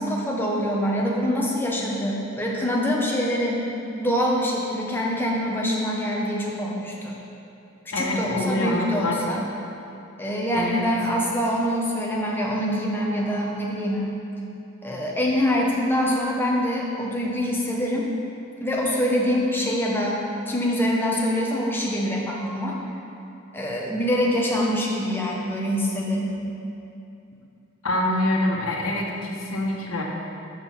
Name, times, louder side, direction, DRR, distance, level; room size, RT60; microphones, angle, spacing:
voice 1, 0.0-3.6 4.0-7.2 7.9-9.4 10.2-14.1 14.8-18.1 18.6-20.2 20.5-22.8 23.5-26.5, equal, 10° left, -3 dB, 1.0 m, -25 dB
voice 2, 7.9-9.2 10.5-10.9 27.8-30.0, left 1 dB, 85° left, -2 dB, 1.3 m, -25 dB
7.1 x 6.2 x 6.0 m, 2.7 s
head